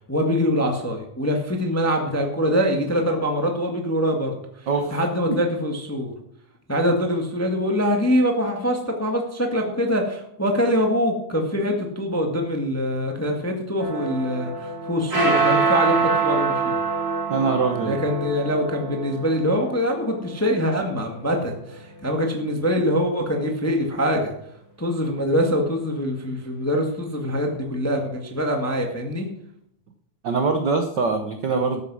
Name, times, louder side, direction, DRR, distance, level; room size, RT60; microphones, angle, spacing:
voice 1, 0.1-4.4 4.9-6.1 6.7-16.8 17.8-24.3 24.8-29.3, equal, 10° left, 2 dB, 0.8 m, -24 dB
voice 2, 4.7-5.0 5.2-5.4 17.3-18.0 30.2-31.8, right 4 dB, 75° right, 5 dB, 1.0 m, -23 dB
sound 1, 13.8-22.3, right 4 dB, 30° right, 4.2 m, -26 dB
13.5 x 8.2 x 6.2 m, 0.74 s
omnidirectional pair, 3.5 m